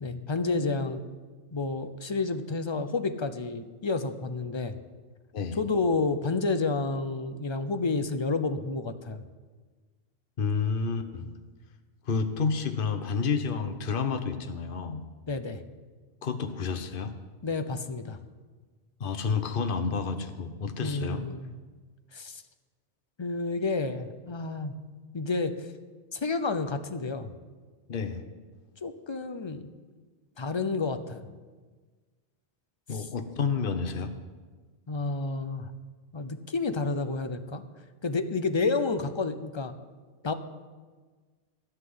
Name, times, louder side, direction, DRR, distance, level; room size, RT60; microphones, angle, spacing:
voice 1, 0.0-1.0 1.5-4.8 5.6-9.2 15.3-15.6 17.4-18.2 20.8-21.5 22.1-22.4 23.2-24.8 25.1-25.5 26.1-27.3 28.8-29.6 30.4-31.2 34.9-35.7 36.1-37.6 38.0-39.7 40.2-40.3, left 3 dB, 30° left, 9 dB, 0.6 m, -30 dB
voice 2, 10.4-11.3 12.0-15.0 16.2-17.1 19.0-21.2 27.9-28.2 32.9-34.1, left 5 dB, 55° left, 8 dB, 1.1 m, -30 dB
13.5 x 5.9 x 9.5 m, 1.4 s
omnidirectional pair, 1.1 m